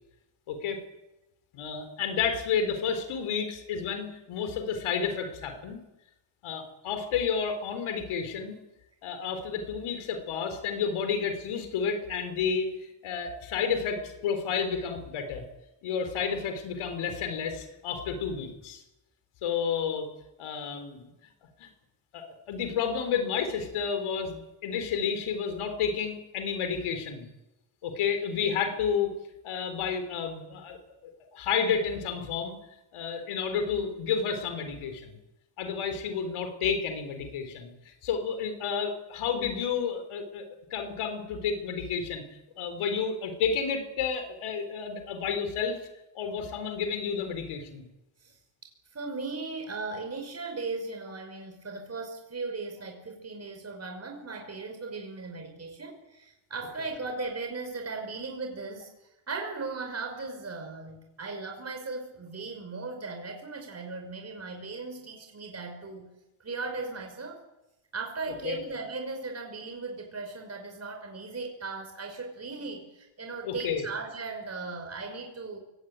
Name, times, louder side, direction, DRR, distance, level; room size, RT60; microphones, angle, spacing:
voice 1, 0.5-0.8 1.5-5.8 6.4-8.6 9.0-15.4 15.8-18.8 19.4-20.1 20.4-21.1 21.6-21.7 22.1-27.3 27.8-29.1 29.4-30.8 31.3-32.6 32.9-35.2 35.6-40.4 40.7-42.2 42.6-45.8 46.1-47.8 68.4-68.6 73.4-73.9, left 6 dB, 80° left, 8 dB, 4.2 m, -31 dB
voice 2, 48.9-58.9 59.3-66.1 66.4-67.4 67.9-75.6, right 3 dB, 30° right, 3 dB, 5.4 m, -37 dB
23.5 x 18.0 x 9.1 m, 0.96 s
cardioid pair, 95°, 48 cm